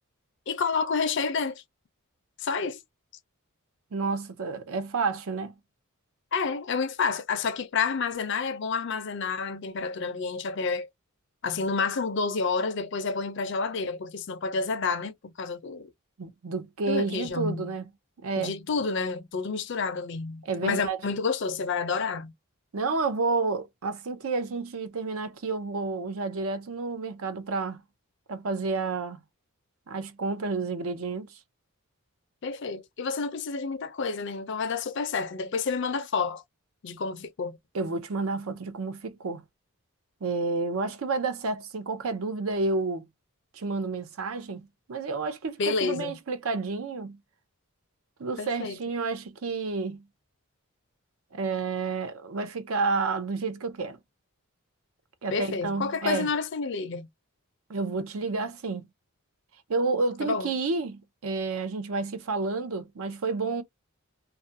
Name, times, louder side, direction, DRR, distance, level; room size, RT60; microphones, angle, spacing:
voice 1, 0.5-1.6 2.4-2.8 6.3-10.9 11.4-15.9 16.9-17.7 18.4-22.3 32.4-36.4 36.8-37.6 45.6-46.1 48.4-48.8 55.3-57.1 60.2-60.5, left 4 dB, 55° left, 0.4 m, -29 dB
voice 2, 3.9-5.5 16.2-17.9 18.2-18.5 20.4-21.0 22.7-27.8 28.3-29.2 29.9-31.3 37.7-39.4 40.2-43.0 43.5-47.2 48.2-50.0 51.3-54.0 55.2-56.3 57.7-58.9 59.7-63.6, right 3 dB, 70° right, 0.6 m, -30 dB
2.4 x 2.1 x 2.6 m
head